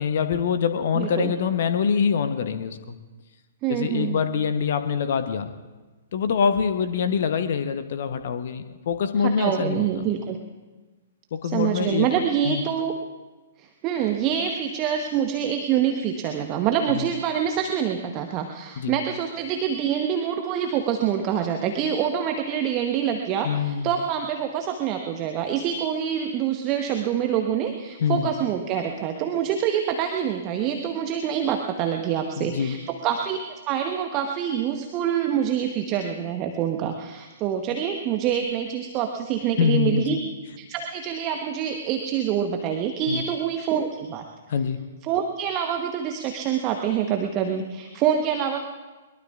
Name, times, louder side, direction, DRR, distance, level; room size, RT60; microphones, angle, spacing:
voice 1, 0.0-3.0 3.7-5.5 6.1-9.9 11.3-12.1 12.4-12.7 16.9-17.1 18.8-18.9 23.4-23.9 28.0-28.3 32.4-32.8 39.6-40.1 43.1-43.2 44.5-44.8, left 7 dB, 50° left, 10 dB, 0.9 m, -24 dB
voice 2, 0.9-1.3 3.6-4.2 9.2-10.4 11.4-12.9 13.6-40.2 40.6-44.2 45.0-48.6, right 9 dB, 30° right, 4 dB, 1.0 m, -26 dB
22.0 x 22.0 x 2.4 m, 1.2 s
figure-of-eight pair, 115°, 0 cm